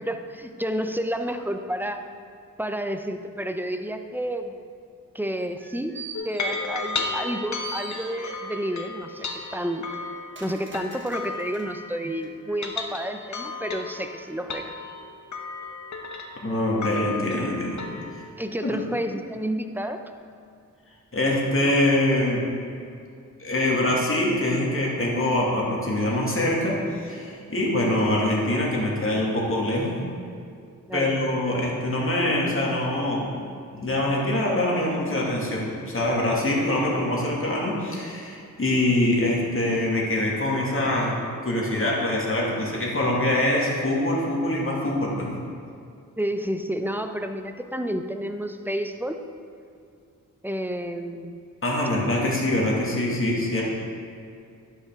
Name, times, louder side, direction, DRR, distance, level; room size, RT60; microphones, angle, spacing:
voice 1, 0.0-2.0 2.6-4.5 5.1-5.9 6.2-9.9 10.4-14.7 18.4-20.0 30.9-31.2 46.2-49.2 50.4-51.4 52.2-52.3, equal, 5° right, 6 dB, 0.6 m, -30 dB
sound 1, 5.4-7.3 7.6-8.6 9.1-11.7 12.2-12.3, right 3 dB, 35° right, 1.3 m, -43 dB
sound 2, 6.1-12.1 12.5-18.2, left 3 dB, 55° left, 0.9 m, -34 dB
voice 2, 16.4-17.8 18.1-18.2 18.6-18.8 21.1-22.4 23.4-30.0 30.9-33.3 33.7-41.1 41.4-45.3 51.6-53.6, left 1 dB, 40° left, -3 dB, 2.2 m, -24 dB
11.5 x 5.6 x 3.7 m, 2.4 s
cardioid pair, 60°, 34 cm